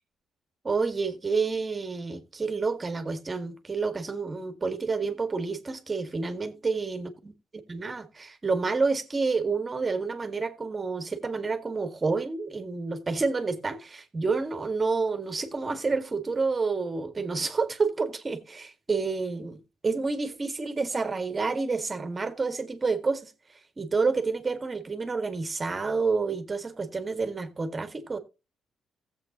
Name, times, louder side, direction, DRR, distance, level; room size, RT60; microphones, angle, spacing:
voice 1, 0.6-7.3 7.7-23.3 23.8-28.2, right 4 dB, 30° right, 1.8 m, -29 dB
16.0 x 7.7 x 2.9 m
cardioid pair, 90°, 0 cm